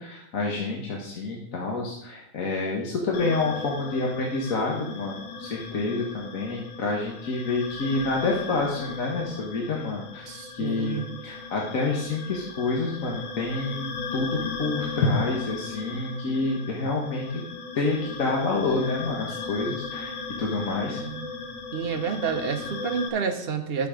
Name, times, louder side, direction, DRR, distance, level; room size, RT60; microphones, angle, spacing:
voice 1, 0.0-10.3 10.5-17.3 17.7-21.0, left 3 dB, 45° left, -2 dB, 1.5 m, -28 dB
sound 1, 3.1-23.1, left 4 dB, 75° left, 2.0 m, -37 dB
voice 2, 10.3-11.0 21.0-21.3 21.7-23.9, right 6 dB, 40° right, 5 dB, 0.9 m, -29 dB
10.5 x 6.9 x 5.1 m, 0.77 s
omnidirectional pair, 2.2 m